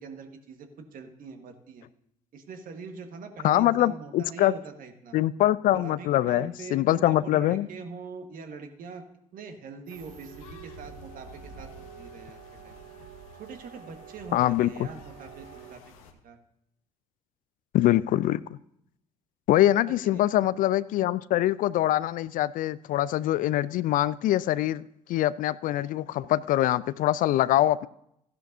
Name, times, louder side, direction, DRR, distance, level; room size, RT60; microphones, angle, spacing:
voice 1, 0.0-1.8 2.3-5.2 5.7-9.0 9.3-12.8 13.4-15.8 16.2-16.4 19.9-20.2, right 4 dB, 50° right, 6 dB, 1.5 m, -43 dB
voice 2, 3.4-4.5 5.1-7.7 14.3-14.9 17.7-18.4 19.5-24.8 25.1-27.9, left 14 dB, 50° left, 19 dB, 0.4 m, -24 dB
sound 1, 9.9-16.1, left 1 dB, 75° left, 1.2 m, -50 dB
sound 2, 9.9-15.8, right 9 dB, 70° right, 0.8 m, -49 dB
15.5 x 10.5 x 2.7 m, 0.76 s
figure-of-eight pair, 55°, 19 cm